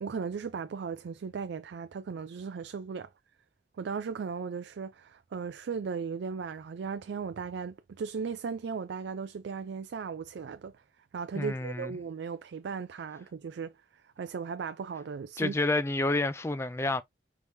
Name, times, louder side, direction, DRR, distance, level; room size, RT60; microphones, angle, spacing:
voice 1, 0.0-3.1 3.8-10.7 11.1-15.5, right 5 dB, 85° right, 0.4 m, -37 dB
voice 2, 11.4-11.9 15.4-17.0, left 2 dB, 15° left, 0.3 m, -29 dB
4.7 x 3.5 x 2.6 m
head